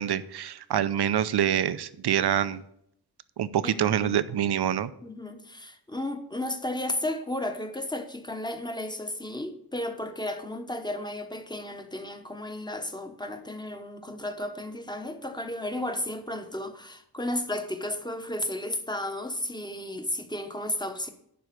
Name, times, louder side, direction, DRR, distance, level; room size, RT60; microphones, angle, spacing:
voice 1, 0.0-2.6 3.4-4.9, right 10 dB, 80° right, 0.6 m, -26 dB
voice 2, 3.6-4.2 5.0-21.1, left 1 dB, 10° left, 1.0 m, -33 dB
11.0 x 4.7 x 6.7 m
wide cardioid pair, 135°, 39 cm